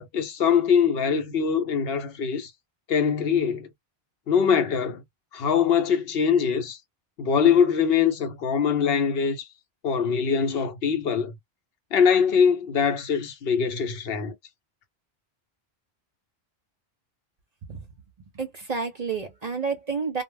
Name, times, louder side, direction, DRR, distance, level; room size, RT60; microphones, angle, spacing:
voice 1, 0.0-2.5 2.9-3.7 4.3-5.0 5.3-6.8 7.2-9.5 9.8-11.3 11.9-14.3, left 7 dB, 70° left, 0.8 m, -22 dB
voice 2, 18.3-20.2, right 5 dB, 45° right, 0.6 m, -30 dB
2.2 x 2.0 x 3.2 m
omnidirectional pair, 1.1 m